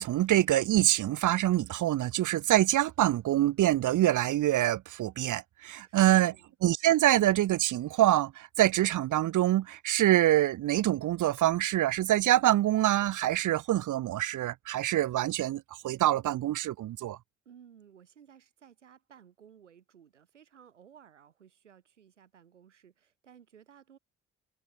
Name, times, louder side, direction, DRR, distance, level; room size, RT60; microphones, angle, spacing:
voice 1, 0.0-6.3 6.6-17.2, right 14 dB, 60° right, 1.3 m, -25 dB
voice 2, 5.8-6.5 17.5-24.0, right 8 dB, 90° right, 7.3 m, -57 dB
hypercardioid pair, 45°, 35 cm